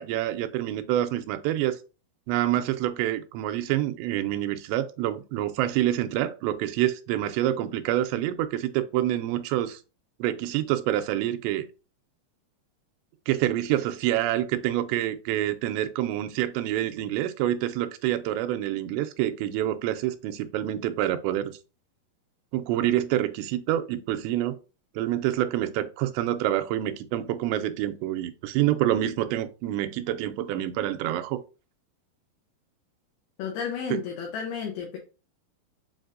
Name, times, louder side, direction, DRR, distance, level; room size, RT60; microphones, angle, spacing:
voice 1, 0.0-1.8 2.3-9.8 10.2-11.7 13.3-21.5 22.5-24.6 25.0-31.4 33.9-34.0, right 13 dB, 85° right, 2.7 m, -27 dB
voice 2, 33.4-35.0, left 7 dB, 75° left, 2.6 m, -32 dB
7.3 x 2.6 x 2.6 m
omnidirectional pair, 4.9 m